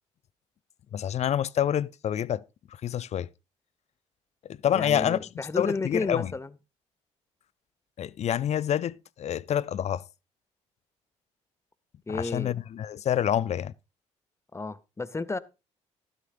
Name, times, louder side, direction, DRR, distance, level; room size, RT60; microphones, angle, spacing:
voice 1, 0.9-2.4 2.8-3.3 4.5-5.3 5.6-6.3 8.0-10.0 12.1-13.7, left 10 dB, 50° left, 0.5 m, -27 dB
voice 2, 4.7-6.5 12.1-12.6 14.5-15.4, left 3 dB, 20° left, 0.8 m, -32 dB
12.5 x 12.0 x 2.5 m
hypercardioid pair, 50°, 15 cm